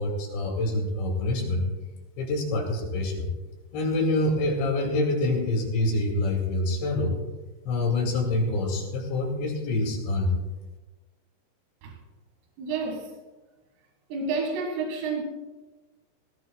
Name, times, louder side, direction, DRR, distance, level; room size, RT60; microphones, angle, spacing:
voice 1, 0.0-1.6 2.2-3.3 3.7-7.1 7.7-10.3, left 2 dB, 65° left, 4.4 m, -26 dB
voice 2, 12.6-13.1 14.1-15.2, right 4 dB, 85° right, 4.6 m, -29 dB
18.5 x 17.5 x 2.3 m
omnidirectional pair, 5.9 m